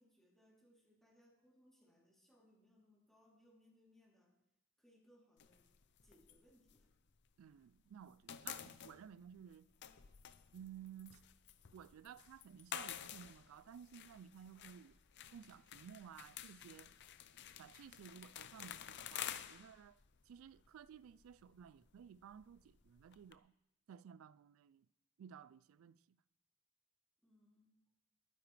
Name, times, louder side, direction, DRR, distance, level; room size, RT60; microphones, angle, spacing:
voice 1, 0.0-4.3 4.8-5.7 6.0-6.9 27.2-27.7, left 1 dB, ahead, 3.1 m, -70 dB
sound 1, 5.4-7.6 7.9-23.4, left 10 dB, 60° left, 0.6 m, -51 dB
voice 2, 7.4-9.7 10.5-11.2 11.7-15.0 15.3-16.9 17.6-20.0 20.3-23.5 23.9-24.9 25.2-26.2, right 8 dB, 80° right, 0.3 m, -56 dB
21.0 x 9.7 x 3.3 m
head